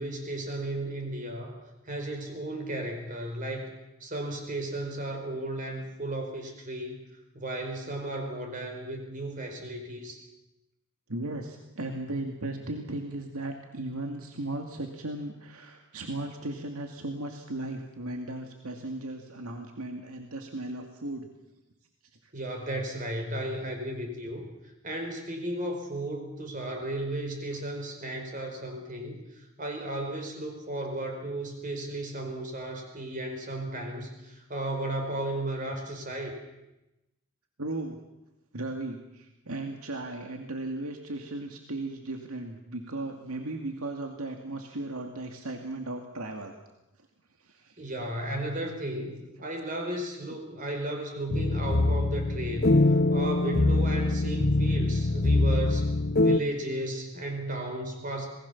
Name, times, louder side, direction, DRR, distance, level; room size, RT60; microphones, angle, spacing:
voice 1, 0.0-1.5 1.9-3.7 4.0-7.0 7.3-10.2 22.3-24.5 24.8-36.4 47.8-55.9 56.2-58.3, right 1 dB, 35° right, 3 dB, 5.0 m, -34 dB
voice 2, 11.1-21.3 22.2-22.3 37.6-38.0 38.5-46.5 47.4-47.9, right 2 dB, 85° right, 3 dB, 2.3 m, -36 dB
sound 1, 51.3-56.4, left 2 dB, 45° left, 0.8 m, -24 dB
27.5 x 20.0 x 7.2 m, 0.94 s
head